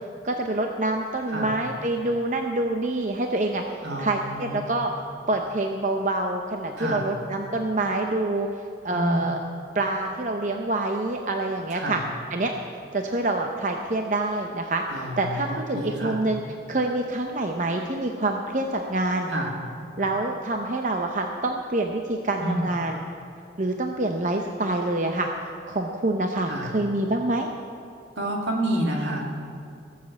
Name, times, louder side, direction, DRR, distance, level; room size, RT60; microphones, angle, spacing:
voice 1, 0.2-3.6 4.0-4.9 5.3-8.5 8.8-9.4 9.7-12.0 12.3-12.5 12.9-16.4 16.7-19.3 20.0-23.0 23.6-25.3 25.7-27.5, right 2 dB, 40° right, 3 dB, 0.7 m, -26 dB
voice 2, 3.8-4.6 6.8-7.1 8.9-9.3 11.7-12.0 14.9-16.2 19.3-19.6 22.4-22.7 26.5-26.7 28.2-29.3, right 1 dB, 80° right, -1 dB, 2.4 m, -29 dB
18.0 x 7.4 x 7.2 m, 2.4 s
head